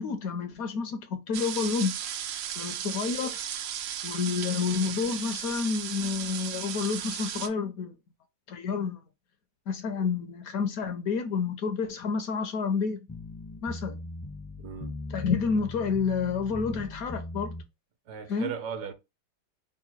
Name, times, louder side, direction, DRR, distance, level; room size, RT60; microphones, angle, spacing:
voice 1, 0.0-2.0 2.6-3.4 4.0-7.9 8.5-9.0 9.7-13.0 13.6-14.0 15.1-17.5 18.3-18.5, left 5 dB, 70° left, 0.9 m, -29 dB
sound 1, 1.3-7.5, right 10 dB, 90° right, 1.3 m, -35 dB
sound 2, 13.1-17.6, left 1 dB, 30° left, 0.4 m, -39 dB
voice 2, 14.6-15.0 18.1-18.9, right 8 dB, 70° right, 1.2 m, -37 dB
3.7 x 2.2 x 4.2 m
omnidirectional pair, 1.9 m